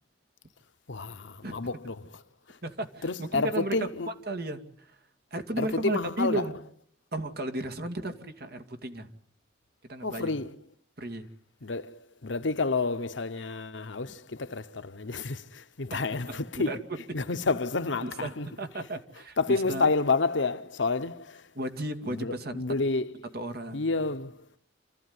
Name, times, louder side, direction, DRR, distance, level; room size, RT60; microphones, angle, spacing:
voice 1, 0.9-2.2 2.5-2.6 3.0-4.1 5.6-6.5 10.0-10.6 11.6-16.8 17.1-18.5 18.8-18.9 19.4-21.5 22.1-23.2 23.7-24.5, left 3 dB, 85° left, 1.0 m, -30 dB
voice 2, 2.6-3.9 4.3-5.0 5.3-6.6 7.1-9.1 9.8-10.3 11.0-11.3 15.9-16.8 18.0-19.9 21.6-22.5 23.3-23.9, right 1 dB, 55° right, 2.3 m, -34 dB
28.0 x 14.5 x 9.6 m
head